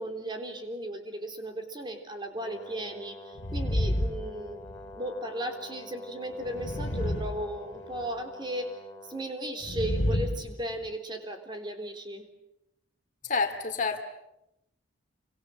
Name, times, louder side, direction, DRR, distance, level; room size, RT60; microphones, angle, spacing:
voice 1, 0.0-4.6 4.9-8.8 9.1-12.3, right 1 dB, 25° right, 5 dB, 3.7 m, -36 dB
Brass instrument, 2.3-9.4, left 1 dB, 10° left, 3.6 m, -47 dB
sound 1, 3.3-4.9 6.4-8.0 9.6-10.9, left 1 dB, 70° left, 2.3 m, -30 dB
voice 2, 13.2-14.0, left 4 dB, 40° left, 6 dB, 2.4 m, -28 dB
28.5 x 25.0 x 7.7 m, 0.86 s
head